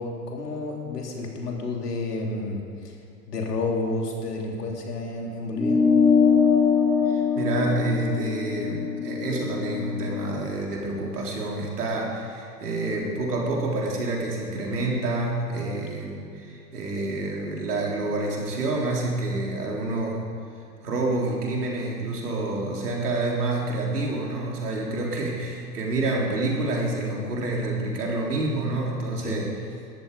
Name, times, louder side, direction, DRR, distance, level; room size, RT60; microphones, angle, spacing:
voice 1, 0.0-2.9 3.3-5.8 29.2-29.4, left 2 dB, 70° left, 1 dB, 3.1 m, -30 dB
sound 1, 5.6-10.4, left 6 dB, 5° left, 1.2 m, -22 dB
voice 2, 7.1-20.2 20.8-29.5, right 2 dB, 70° right, -2 dB, 3.8 m, -28 dB
20.0 x 13.0 x 5.1 m, 2.6 s
figure-of-eight pair, 95°, 49 cm